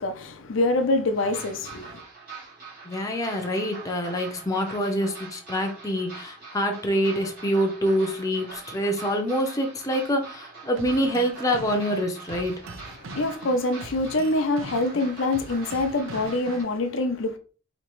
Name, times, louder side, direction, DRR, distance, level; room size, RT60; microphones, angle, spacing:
voice 1, 0.0-2.0 13.0-17.4, left 2 dB, 70° left, 0.5 m, -25 dB
sound 1, 1.1-16.6, right 4 dB, 50° right, 1.8 m, -43 dB
voice 2, 2.8-12.5, equal, 15° left, 0.6 m, -26 dB
sound 2, 10.8-16.8, right 2 dB, 85° right, 0.5 m, -42 dB
4.3 x 2.9 x 3.0 m
head